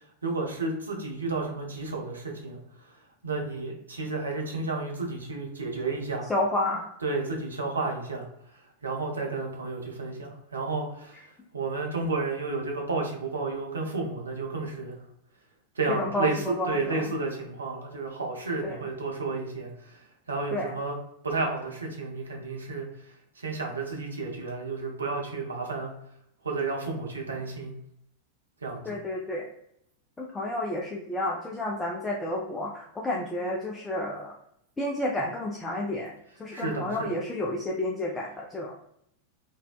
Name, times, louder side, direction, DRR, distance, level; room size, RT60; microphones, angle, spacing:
voice 1, 0.0-2.6 3.2-6.3 7.0-8.3 8.8-15.0 15.8-20.0 20.3-20.9 21.2-23.1 23.4-25.9 26.4-27.7 28.6-29.0 36.5-37.1, right 3 dB, 75° right, 0 dB, 0.5 m, -32 dB
voice 2, 6.3-6.9 16.0-17.1 18.6-18.8 20.5-20.7 28.8-29.5 30.2-34.3 34.8-36.1 36.4-38.7, left 1 dB, 10° left, -3 dB, 0.4 m, -30 dB
2.6 x 2.1 x 2.3 m, 0.73 s
figure-of-eight pair, 90°, 0 cm